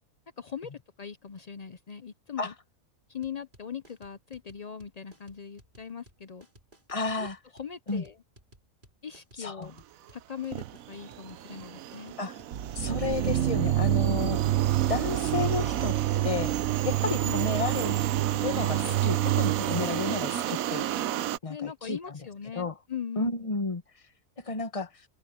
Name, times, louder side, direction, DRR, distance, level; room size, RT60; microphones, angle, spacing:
voice 1, 0.4-0.7 1.0-2.5 3.1-6.5 7.2-7.3 7.5-8.2 9.0-9.8 10.1-12.2 17.0-17.5 21.5-23.5, left 7 dB, 60° left, 0.4 m, -40 dB
sound 1, 3.2-19.3, equal, 35° right, 4.3 m, -58 dB
voice 2, 6.9-7.4 7.9-8.0 9.4-9.7 12.2-12.4 12.8-14.4 14.8-16.5 16.8-17.9 18.4-20.8 21.4-22.2 22.5-22.7 23.2-23.8 24.4-24.9, left 4 dB, 25° left, 1.4 m, -32 dB
sound 2, 10.0-10.2 10.5-21.4, right 12 dB, 75° right, 1.1 m, -34 dB
sound 3, 12.5-20.4, right 13 dB, 60° right, 1.0 m, -28 dB
omnidirectional pair, 1.5 m